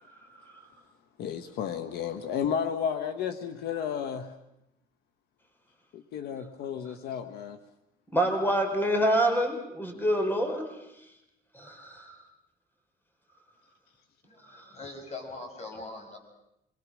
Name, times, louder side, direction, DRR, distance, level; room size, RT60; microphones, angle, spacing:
voice 1, 1.2-4.3 5.9-7.6, left 8 dB, 85° left, 9 dB, 1.3 m, -32 dB
voice 2, 8.1-10.7 11.5-12.2 14.5-14.6, right 1 dB, 10° left, 4 dB, 4.7 m, -26 dB
voice 3, 14.2-16.2, left 3 dB, 45° left, 3 dB, 6.4 m, -42 dB
27.0 x 22.5 x 6.3 m, 0.86 s
cardioid pair, 100°, 16 cm